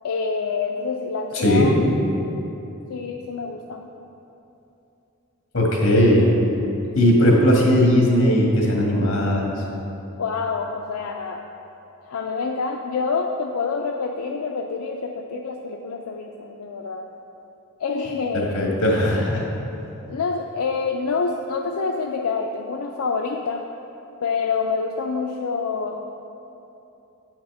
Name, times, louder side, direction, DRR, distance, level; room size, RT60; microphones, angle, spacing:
voice 1, 0.0-2.0 2.9-3.9 10.2-11.4 12.0-17.0 17.8-18.7 20.1-23.6 24.2-26.1, left 4 dB, 90° left, 2 dB, 0.5 m, -27 dB
voice 2, 1.3-1.7 5.5-6.3 7.0-9.5 18.3-19.4, left 1 dB, 65° left, -2 dB, 1.9 m, -18 dB
9.0 x 5.9 x 5.5 m, 3.0 s
head